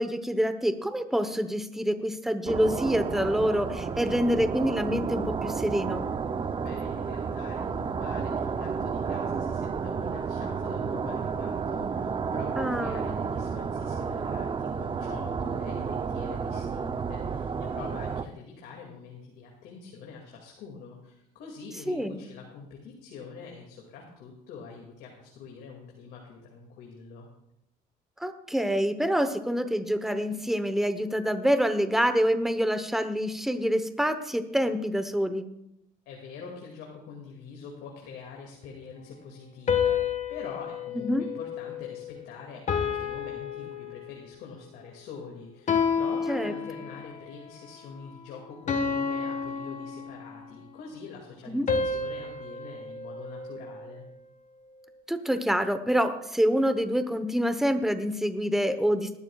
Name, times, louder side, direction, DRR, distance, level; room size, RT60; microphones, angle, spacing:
voice 1, 0.0-6.0 12.6-13.1 21.9-22.2 28.2-35.5 40.9-41.3 46.3-46.5 51.5-51.7 55.1-59.2, equal, ahead, 9 dB, 1.0 m, -26 dB
sound 1, 2.5-18.2, right 5 dB, 30° right, 0.6 m, -31 dB
voice 2, 6.6-27.3 36.1-54.1, left 5 dB, 85° left, -1 dB, 2.3 m, -45 dB
sound 2, 39.7-42.2 42.7-44.4 45.7-47.2 48.7-50.5 51.7-54.0, left 6 dB, 45° left, 1.3 m, -30 dB
19.0 x 12.0 x 2.4 m, 0.81 s
cardioid pair, 110°, 17 cm